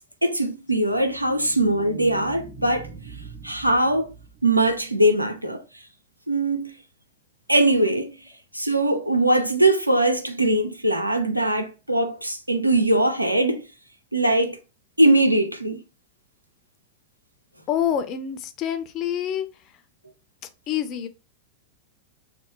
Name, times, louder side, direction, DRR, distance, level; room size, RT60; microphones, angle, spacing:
voice 1, 0.2-2.9 3.4-4.1 4.4-5.6 6.3-6.7 7.5-8.1 8.5-13.6 14.1-14.6 15.0-15.8, right 1 dB, 85° right, 0.4 m, -21 dB
sound 1, 0.8-5.2, right 4 dB, 65° right, 0.8 m, -43 dB
voice 2, 17.7-19.5 20.7-21.1, left 9 dB, 35° left, 0.3 m, -26 dB
3.0 x 2.0 x 2.2 m
figure-of-eight pair, 90°, 0 cm